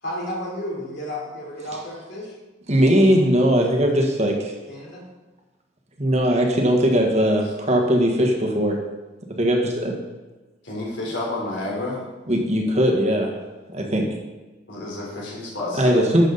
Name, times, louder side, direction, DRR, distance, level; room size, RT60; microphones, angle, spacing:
voice 1, 0.0-2.4 3.5-3.6 3.9-4.1 4.7-5.0, left 1 dB, 60° left, -3 dB, 3.5 m, -33 dB
voice 2, 2.7-4.5 6.0-8.8 9.3-10.0 12.3-13.3 13.7-14.1 15.8-16.3, equal, 35° right, 1 dB, 1.5 m, -19 dB
voice 3, 10.6-12.0 14.7-16.0, left 2 dB, 80° left, -3 dB, 3.7 m, -30 dB
12.0 x 7.4 x 4.0 m, 1.2 s
head